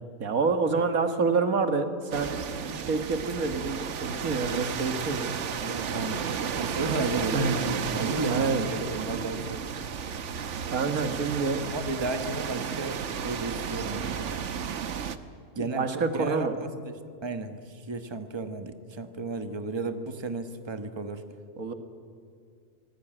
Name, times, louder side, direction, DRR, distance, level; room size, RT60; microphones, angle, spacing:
voice 1, 0.2-2.3 2.7-5.3 7.3-7.6 8.3-8.6 10.7-11.6 15.6-16.5 21.6-21.7, right 4 dB, 90° right, 7 dB, 2.0 m, -27 dB
sound 1, 2.1-15.2, right 7 dB, 60° right, 1.2 m, -33 dB
voice 2, 5.6-6.2 6.6-9.6 11.7-14.2 15.5-15.9 16.1-21.2, right 3 dB, 20° right, 8 dB, 1.2 m, -33 dB
25.0 x 19.0 x 9.0 m, 2.2 s
omnidirectional pair, 1.4 m